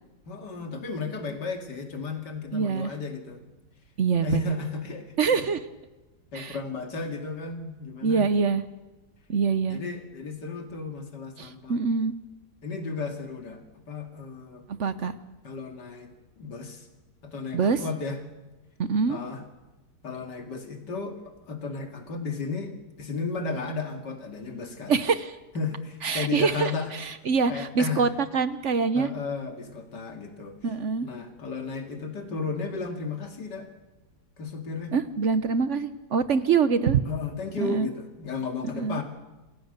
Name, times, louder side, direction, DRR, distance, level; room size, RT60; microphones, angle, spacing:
voice 1, 0.3-3.4 4.2-5.1 6.3-8.3 9.7-11.8 12.6-13.6 13.9-14.6 15.4-16.1 16.4-16.9 17.2-18.2 19.1-19.4 20.0-21.2 21.5-25.0 25.5-26.9 27.5-28.0 28.9-30.6 31.0-33.7 34.4-34.9 37.1-39.0, left 4 dB, 85° left, 5 dB, 2.9 m, -34 dB
voice 2, 2.5-2.9 4.0-4.6 5.2-5.6 6.3-6.6 8.0-8.6 9.3-9.8 11.4-12.1 14.8-15.1 17.5-17.8 18.8-19.2 24.9-25.4 26.0-29.1 30.6-31.1 34.9-37.0 37.6-37.9 38.7-39.0, right 5 dB, 55° right, 13 dB, 1.1 m, -25 dB
27.0 x 16.0 x 6.7 m, 1.1 s
omnidirectional pair, 1.8 m